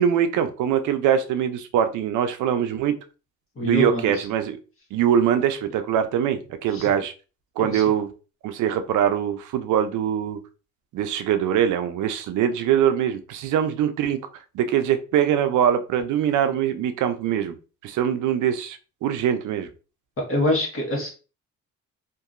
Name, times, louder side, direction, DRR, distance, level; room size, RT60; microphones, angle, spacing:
voice 1, 0.0-3.0 3.6-4.6 4.9-7.1 7.6-8.1 8.4-10.4 10.9-14.3 14.5-17.5 17.8-19.7, right 9 dB, 80° right, 9 dB, 0.5 m, -23 dB
voice 2, 3.6-4.2 6.7-6.9 7.6-7.8 20.2-21.1, left 1 dB, 45° left, 0 dB, 1.4 m, -25 dB
2.8 x 2.6 x 2.5 m, 0.34 s
cardioid pair, 90°, 30 cm